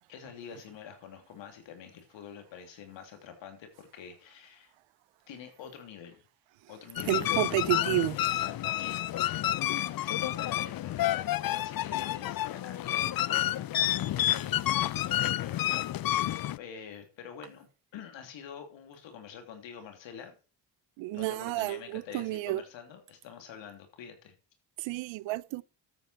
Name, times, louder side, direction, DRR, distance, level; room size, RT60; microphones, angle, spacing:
voice 1, 0.0-4.7 5.3-6.2 6.7-7.8 8.1-13.7 14.0-16.1 16.5-17.7 17.9-20.4 21.1-24.4, left 8 dB, 80° left, 3.1 m, -47 dB
sound 1, 7.0-16.6, left 13 dB, 50° left, 0.6 m, -30 dB
voice 2, 7.1-8.2 21.0-22.6 24.8-25.6, right 16 dB, 85° right, 0.7 m, -30 dB
13.0 x 8.1 x 4.4 m
supercardioid pair, 70°, 44 cm